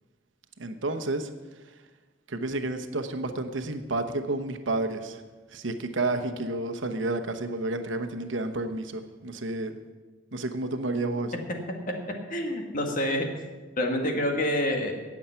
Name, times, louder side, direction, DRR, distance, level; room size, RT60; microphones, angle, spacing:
voice 1, 0.6-1.3 2.3-5.2 5.5-9.8 10.3-11.3, right 2 dB, 85° right, 7 dB, 1.0 m, -30 dB
voice 2, 12.3-13.3 13.8-14.9, left 1 dB, 45° left, 2 dB, 1.9 m, -27 dB
18.5 x 7.3 x 5.7 m, 1.3 s
head